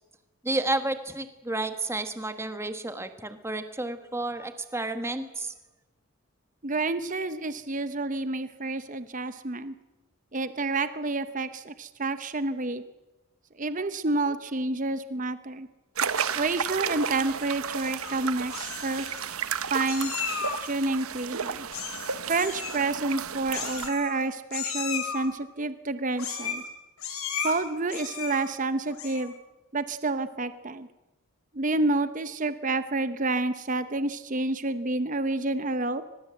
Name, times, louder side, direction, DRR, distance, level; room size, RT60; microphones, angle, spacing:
voice 1, 0.4-5.5, right 2 dB, 10° right, 9 dB, 1.3 m, -31 dB
voice 2, 6.6-9.7 10.3-12.8 13.6-15.7 16.3-19.1 19.7-20.1 20.6-21.7 22.3-26.6 27.4-29.3 29.7-30.9 31.5-36.0, right 2 dB, 35° right, 12 dB, 0.8 m, -29 dB
sound 1, 16.0-23.9, right 7 dB, 75° right, 1.0 m, -33 dB
Meow, 17.8-18.2 18.5-19.2 19.9-20.7 21.7-22.1 22.4-22.8 23.5-24.2 24.5-25.3 26.2-26.7 27.0-27.5 27.9-28.5 28.9-29.3, left 7 dB, 75° left, 4.9 m, -34 dB
23.5 x 20.5 x 7.7 m, 1.1 s
head